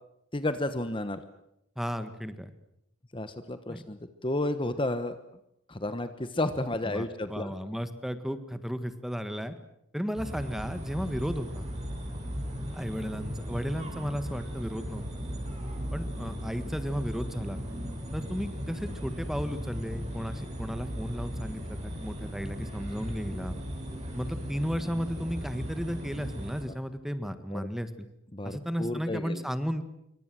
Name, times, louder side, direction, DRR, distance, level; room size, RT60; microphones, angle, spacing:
voice 1, 0.3-1.2 3.1-5.2 5.7-7.5 27.5-27.6 28.3-29.4, left 1 dB, 25° left, 11 dB, 1.2 m, -32 dB
voice 2, 1.7-2.5 3.7-3.8 6.8-9.5 9.9-11.6 12.7-15.2 15.9-17.6 18.1-23.6 24.1-28.1 28.4-29.8, equal, ahead, 11 dB, 1.6 m, -34 dB
sound 1, 10.2-26.6, equal, 35° right, 6.6 m, -37 dB
26.5 x 24.0 x 7.7 m, 0.79 s
head